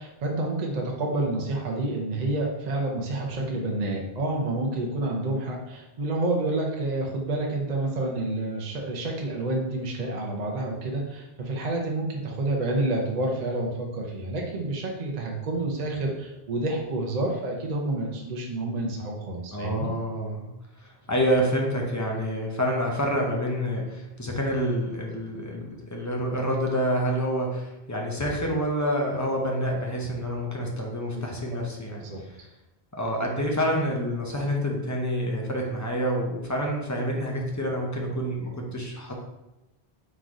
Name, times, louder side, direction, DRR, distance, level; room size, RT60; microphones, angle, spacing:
voice 1, 0.0-19.9 32.0-32.2, right 2 dB, 50° right, -1 dB, 0.7 m, -29 dB
voice 2, 19.5-20.5 20.8-32.4 32.9-39.1, equal, 20° left, -1 dB, 0.5 m, -28 dB
3.8 x 3.1 x 3.6 m, 0.97 s
omnidirectional pair, 1.0 m